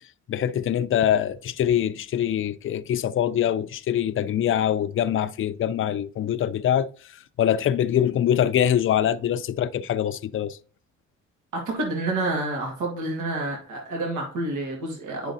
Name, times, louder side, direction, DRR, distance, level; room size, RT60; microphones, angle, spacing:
voice 1, 0.3-6.9 7.4-10.6, left 10 dB, 45° left, 0.5 m, -24 dB
voice 2, 11.5-15.3, right 2 dB, 75° right, 1.7 m, -28 dB
9.9 x 5.0 x 2.7 m
cardioid pair, 90°, 30 cm